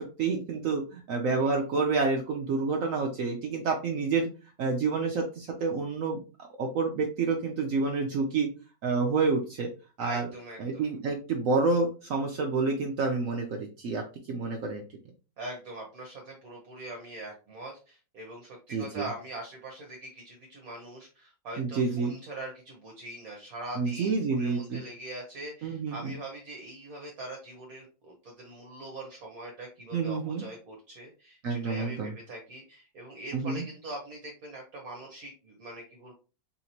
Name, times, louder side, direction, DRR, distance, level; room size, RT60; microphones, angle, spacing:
voice 1, 0.0-4.3 4.6-6.2 6.6-8.5 8.8-9.7 10.0-10.3 10.6-14.0 14.3-14.8 18.7-19.1 21.6-22.1 23.8-24.8 25.6-26.2 29.9-30.4 31.4-32.1 33.3-33.6, right 4 dB, 85° right, 2 dB, 0.7 m, -28 dB
voice 2, 10.0-10.9 15.4-36.1, right 1 dB, 55° right, 0 dB, 1.2 m, -42 dB
4.1 x 2.9 x 2.7 m, 0.33 s
omnidirectional pair, 2.1 m